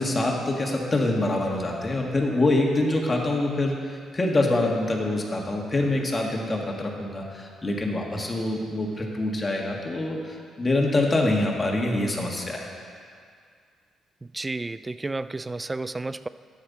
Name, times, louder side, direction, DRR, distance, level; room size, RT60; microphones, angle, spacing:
voice 1, 0.0-3.7 4.1-12.7, left 2 dB, 25° left, 0 dB, 1.8 m, -25 dB
voice 2, 14.2-16.3, right 2 dB, 20° right, 15 dB, 0.3 m, -32 dB
12.5 x 9.1 x 4.1 m, 2.2 s
cardioid pair, 90°, 0 cm